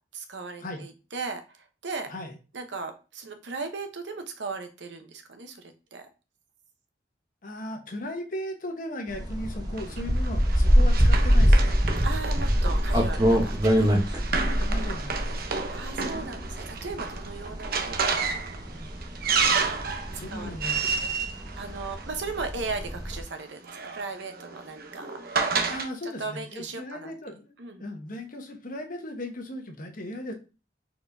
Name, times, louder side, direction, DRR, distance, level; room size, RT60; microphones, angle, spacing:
voice 1, 0.1-2.1 2.5-6.1 12.0-14.0 15.7-18.1 20.3-20.5 21.4-25.7 26.0-27.1 27.6-27.8, right 4 dB, 85° right, 7 dB, 0.9 m, -37 dB
voice 2, 7.4-11.8 14.4-15.4 20.2-21.2 25.7-30.3, left 1 dB, 50° left, 4 dB, 1.1 m, -37 dB
sound 1, 9.1-23.2, equal, 25° right, 1.0 m, -24 dB
Run, 9.8-22.4 23.4-25.9, right 5 dB, 55° right, 0.7 m, -31 dB
4.3 x 4.3 x 2.7 m, 0.31 s
head